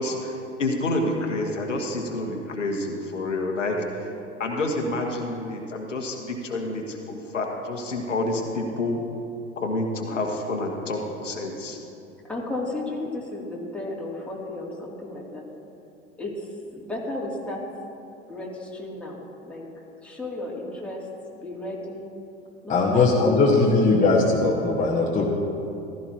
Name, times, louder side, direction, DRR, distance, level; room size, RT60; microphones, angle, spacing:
voice 1, 0.0-4.1 4.4-9.0 9.6-11.8, left 2 dB, 80° left, 1 dB, 1.4 m, -28 dB
voice 2, 12.2-15.4 16.2-16.5 16.7-17.6 18.3-19.6 20.0-21.0 21.3-22.1 22.6-23.5, left 2 dB, 5° left, -4 dB, 2.7 m, -34 dB
voice 3, 22.7-25.2, left 3 dB, 20° left, -4 dB, 1.4 m, -19 dB
15.0 x 14.5 x 2.9 m, 2.7 s
figure-of-eight pair, 85°, 36 cm